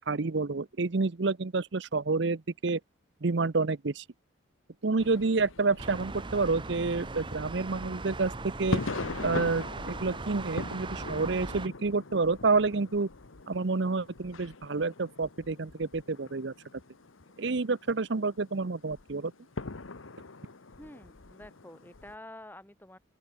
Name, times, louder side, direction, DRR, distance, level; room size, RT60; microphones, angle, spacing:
voice 1, 0.1-2.8 3.2-4.0 4.8-8.3 8.6-8.8 9.2-13.1 13.5-16.5 17.4-19.3, right 3 dB, 60° right, 0.7 m, -29 dB
sound 1, 5.0-22.2, left 3 dB, 85° left, 1.2 m, -42 dB
sound 2, 5.8-11.7, right 3 dB, 25° right, 0.7 m, -39 dB
voice 2, 20.8-23.0, left 1 dB, 10° left, 6.7 m, -48 dB
open air
head